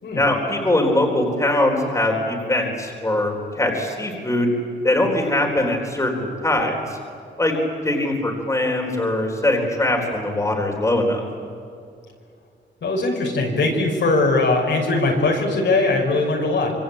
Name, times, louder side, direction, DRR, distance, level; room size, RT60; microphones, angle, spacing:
voice 1, 0.2-4.5 4.8-7.0 7.4-7.6 7.8-11.2, left 1 dB, 15° left, 1 dB, 4.1 m, -21 dB
voice 2, 12.8-16.7, left 2 dB, 70° left, 0 dB, 6.0 m, -20 dB
25.5 x 25.0 x 8.8 m, 2.4 s
wide cardioid pair, 125°, 19 cm